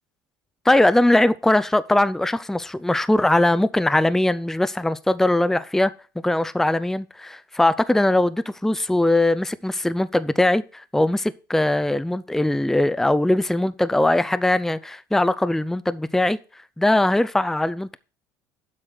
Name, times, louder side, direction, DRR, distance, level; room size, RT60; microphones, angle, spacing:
voice 1, 0.7-16.4 16.8-18.0, left 1 dB, 5° left, 0.5 m, -20 dB
7.9 x 5.9 x 6.4 m
hypercardioid pair, 75°, 10 cm